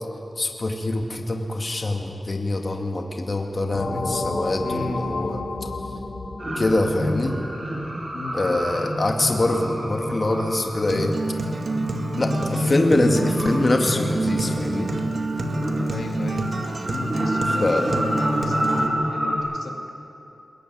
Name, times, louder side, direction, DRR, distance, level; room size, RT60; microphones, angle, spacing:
voice 1, 0.4-5.4 6.6-7.4 8.3-11.1 12.2-14.9 17.6-17.9, left 2 dB, 35° left, 3 dB, 2.1 m, -24 dB
sound 1, 3.7-8.1, left 2 dB, 65° left, 2.7 m, -31 dB
voice 2, 4.6-5.2 8.1-8.6 15.9-19.8, left 3 dB, 85° left, 3 dB, 2.4 m, -35 dB
sound 2, 6.4-19.3, equal, 40° right, 5.3 m, -28 dB
Acoustic guitar, 10.9-18.9, right 3 dB, 60° right, 2.0 m, -28 dB
22.0 x 21.5 x 9.5 m, 2.8 s
wide cardioid pair, 100°, 0 cm